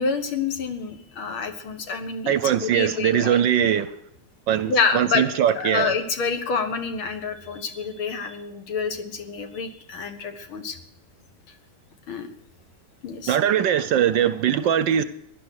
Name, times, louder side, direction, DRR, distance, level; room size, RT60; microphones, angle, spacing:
voice 1, 0.0-3.7 4.7-5.2 5.5-10.8 12.1-12.3 13.0-13.4, left 5 dB, 70° left, 2.3 m, -28 dB
voice 2, 2.3-3.9 4.5-5.9 13.3-15.0, right 9 dB, 70° right, 1.2 m, -21 dB
17.0 x 11.0 x 6.3 m
omnidirectional pair, 2.4 m